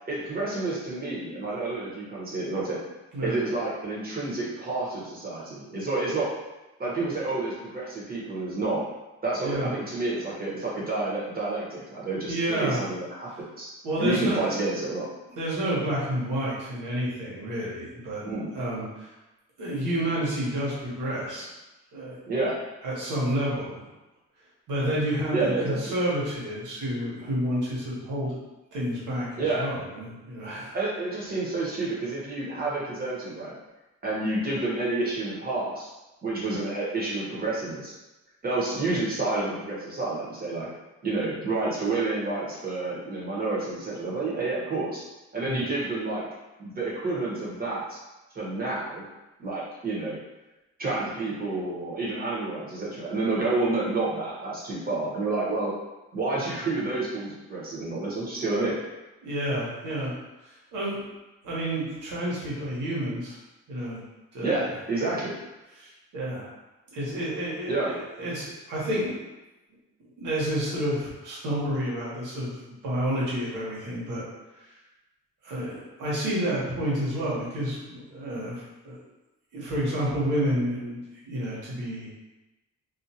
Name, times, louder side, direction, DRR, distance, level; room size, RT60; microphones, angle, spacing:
voice 1, 0.1-2.8 3.2-6.3 6.8-8.8 9.2-13.3 13.6-13.7 14.0-15.1 18.2-18.5 22.3-22.6 25.3-25.9 29.4-29.7 30.7-33.5 34.0-35.9 36.2-37.9 38.4-40.7 41.0-45.0 45.3-46.3 46.6-48.0 48.3-49.0 49.4-50.2 50.8-55.7 56.1-58.8 64.4-65.3 67.7-67.9, right 2 dB, 30° right, -6 dB, 1.1 m, -29 dB
voice 2, 12.2-12.8 13.8-14.5 15.3-18.2 18.5-19.1 19.6-21.5 21.9-22.2 22.8-23.9 24.7-28.3 28.7-30.7 45.5-45.6 59.2-60.1 60.4-61.0 61.4-63.4 63.7-64.0 64.3-64.7 65.8-66.5 66.9-69.1 70.2-72.5 72.8-74.2 75.4-79.0 79.5-82.1, equal, 85° right, -6 dB, 1.2 m, -29 dB
2.5 x 2.4 x 2.8 m, 1.0 s
cardioid pair, 90°, 30 cm